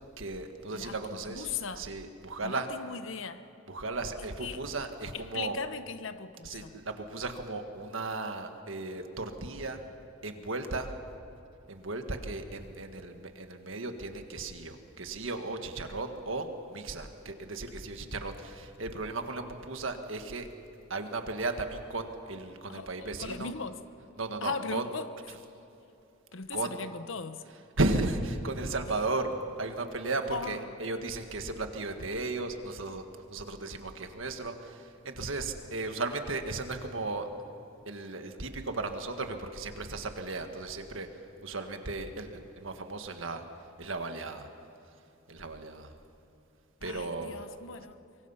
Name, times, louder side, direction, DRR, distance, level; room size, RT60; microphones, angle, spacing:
voice 1, 0.2-1.5 1.8-2.7 3.7-5.6 6.4-9.8 10.2-10.9 11.7-20.5 20.9-23.5 24.2-24.8 26.5-26.8 27.8-33.0 33.3-37.3 37.9-41.1 41.4-43.4 43.8-44.5 45.3-45.9 46.8-47.4, right 2 dB, 70° right, 1.7 m, -35 dB
voice 2, 0.7-1.9 2.4-3.5 4.4-4.6 5.1-6.8 22.7-23.8 24.4-25.1 26.3-27.4 30.3-30.6 46.8-48.0, left 5 dB, 65° left, 1.0 m, -38 dB
24.5 x 23.5 x 5.7 m
head